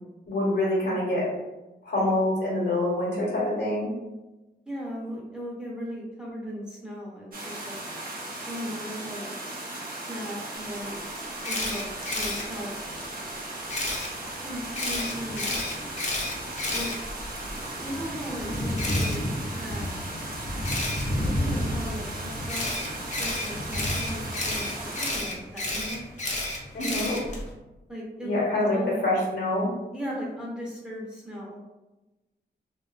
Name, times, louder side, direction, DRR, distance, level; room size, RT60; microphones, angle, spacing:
voice 1, 0.3-1.3 1.8-3.9 26.7-27.2 28.2-29.7, left 1 dB, 75° left, -5 dB, 1.0 m, -25 dB
voice 2, 4.7-7.8 8.5-9.4 10.1-11.0 11.5-12.8 14.4-15.6 16.7-16.9 17.8-19.9 21.2-22.9 23.2-24.7 25.0-26.0 27.9-28.4 28.7-29.0 29.9-31.6, equal, 5° right, -5 dB, 0.6 m, -37 dB
sound 1, 7.3-25.2, right 2 dB, 55° right, 0.6 m, -37 dB
Camera, 11.4-12.4 13.7-14.1 14.7-17.5 18.8-19.1 20.6-21.0 22.5-27.4, left 2 dB, 40° left, 0.6 m, -31 dB
Thunder / Rain, 11.9-27.5, equal, 90° left, 0.6 m, -35 dB
2.5 x 2.2 x 2.4 m, 1.1 s
wide cardioid pair, 110°, 18 cm